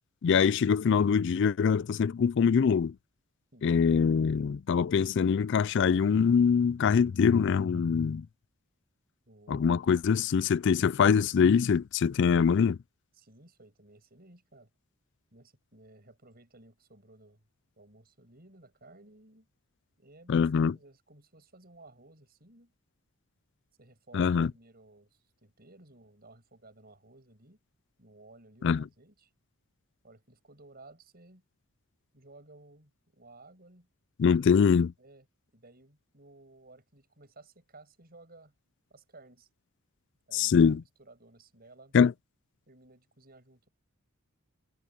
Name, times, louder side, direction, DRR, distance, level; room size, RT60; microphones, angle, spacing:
voice 1, 0.2-2.9 3.6-8.3 9.5-12.8 20.3-20.7 24.1-24.5 28.6-28.8 34.2-34.9 40.3-40.8 41.9-42.1, left 6 dB, 55° left, 0.3 m, -24 dB
voice 2, 9.3-9.7 13.1-14.7 15.3-17.4 17.8-19.5 20.0-22.7 23.8-27.6 28.0-29.3 30.0-31.4 32.1-33.9 35.0-35.3 35.5-38.5 38.9-39.5 40.3-42.0 42.7-43.7, right 2 dB, 45° right, 7.4 m, -56 dB
head